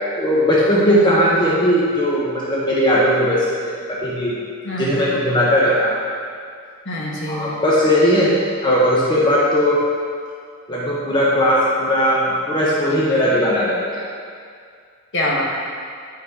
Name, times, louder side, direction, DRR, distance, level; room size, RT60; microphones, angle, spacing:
voice 1, 0.2-4.4 4.8-5.9 7.3-8.3 8.6-9.8 10.7-14.0, equal, 20° left, -7 dB, 1.0 m, -18 dB
voice 2, 4.6-5.0 6.8-7.6 15.1-15.4, left 1 dB, 55° left, -3 dB, 1.4 m, -24 dB
9.7 x 5.9 x 3.8 m, 2.2 s
head